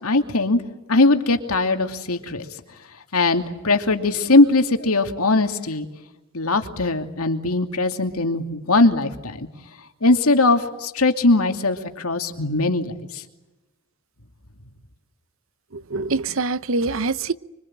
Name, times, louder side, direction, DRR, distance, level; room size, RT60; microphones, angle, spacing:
voice 1, 0.0-0.6 0.9-2.4 3.1-5.9 6.3-9.5 10.0-13.2, left 2 dB, 85° left, 2.7 m, -20 dB
voice 2, 15.7-17.3, right 3 dB, 65° right, 0.8 m, -24 dB
25.5 x 25.0 x 8.9 m
head